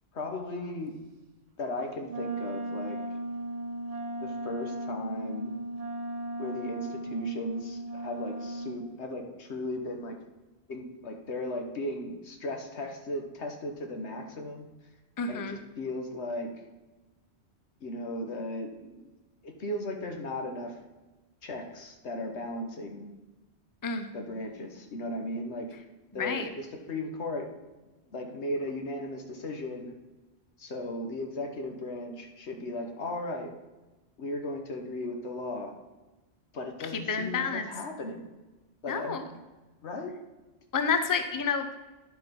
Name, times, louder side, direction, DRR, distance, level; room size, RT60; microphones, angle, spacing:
voice 1, 0.1-1.0 1.6-3.0 4.2-5.5 6.4-10.2 10.7-14.7 15.3-16.5 17.8-19.1 19.4-20.8 21.4-23.1 24.1-25.7 26.1-27.5 28.1-29.9 30.6-33.5 34.2-35.7 36.5-38.3 38.8-39.2 39.8-40.2, left 1 dB, 90° left, 3 dB, 1.4 m, -36 dB
Wind instrument woodwind instrument, 2.1-8.9, right 1 dB, 40° right, 0.7 m, -36 dB
voice 2, 15.2-15.6 23.8-24.1 26.2-26.5 36.9-37.7 38.9-39.2 40.7-41.7, left 5 dB, 25° left, 8 dB, 0.6 m, -29 dB
10.5 x 5.1 x 5.2 m, 1.1 s
omnidirectional pair, 1.1 m